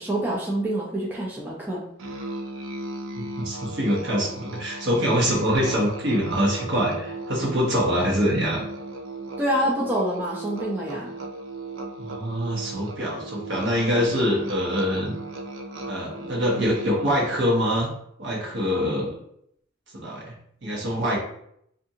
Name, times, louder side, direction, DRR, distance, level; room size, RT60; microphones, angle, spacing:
voice 1, 0.0-1.8 9.4-11.1, right 1 dB, 10° right, -5 dB, 0.4 m, -26 dB
Musical instrument, 2.0-17.5, right 2 dB, 90° right, 0.4 m, -37 dB
voice 2, 3.2-8.6 12.0-15.1 15.9-17.9 18.2-19.2 19.9-20.3 20.6-21.2, equal, 60° right, -3 dB, 0.9 m, -24 dB
2.5 x 2.5 x 2.7 m, 0.71 s
head